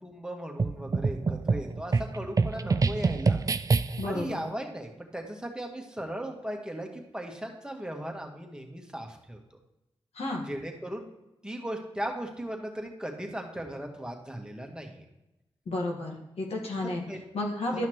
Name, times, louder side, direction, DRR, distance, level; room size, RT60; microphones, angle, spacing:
voice 1, 0.0-3.4 4.0-9.4 10.5-11.1 11.4-15.0 16.8-17.2 17.7-17.9, right 1 dB, 10° right, 2 dB, 1.5 m, -37 dB
sound 1, 0.6-4.2, right 4 dB, 35° right, 0.3 m, -26 dB
voice 2, 4.0-4.4 10.1-10.5 15.6-17.0 17.3-17.9, left 1 dB, 80° left, 0 dB, 1.6 m, -32 dB
11.5 x 5.7 x 3.1 m, 0.94 s
cardioid pair, 50°, 10 cm